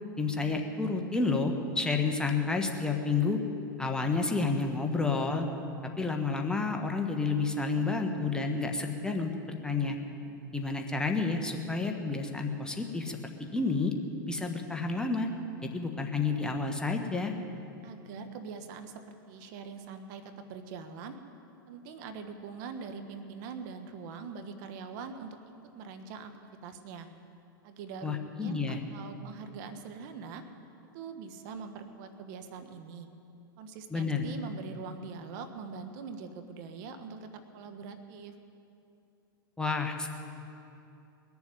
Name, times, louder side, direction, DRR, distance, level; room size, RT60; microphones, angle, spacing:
voice 1, 0.2-3.4 3.8-5.5 6.0-9.3 9.6-10.0 10.5-13.2 13.5-13.9 14.3-15.3 15.6-17.3 28.0-28.8 33.9-34.2 39.6-40.1, left 4 dB, 5° left, 2 dB, 1.4 m, -30 dB
voice 2, 17.8-21.2 21.7-25.4 25.7-26.3 26.6-27.1 27.6-30.4 30.9-33.1 33.6-38.3, right 5 dB, 55° right, 8 dB, 1.3 m, -43 dB
21.0 x 7.2 x 9.4 m, 2.7 s
hypercardioid pair, 110°, 12 cm